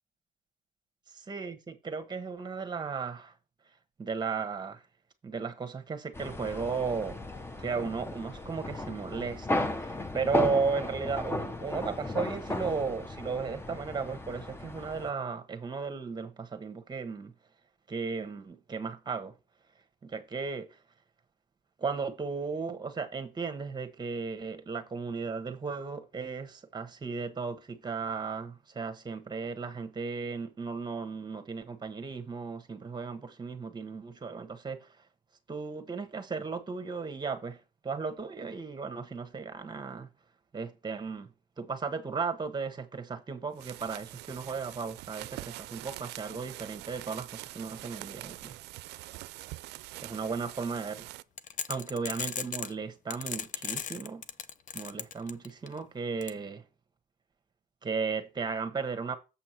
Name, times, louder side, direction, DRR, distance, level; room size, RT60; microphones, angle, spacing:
voice 1, 1.3-3.3 4.0-4.8 5.2-7.2 7.6-17.3 17.9-19.3 20.0-20.7 21.8-34.9 35.5-37.6 37.8-40.1 40.5-41.3 41.6-48.5 50.0-51.1 51.7-54.2 54.7-56.6 57.8-59.2, right 5 dB, 25° right, 1.3 m, -35 dB
sound 1, 6.1-15.1, left 2 dB, 15° left, 0.9 m, -35 dB
sound 2, 43.5-51.2, right 17 dB, 80° right, 0.4 m, -44 dB
sound 3, 51.4-52.7 53.1-55.7 56.2-56.3, left 8 dB, 50° left, 0.6 m, -35 dB
7.4 x 5.7 x 4.5 m
cardioid pair, 110°, 17 cm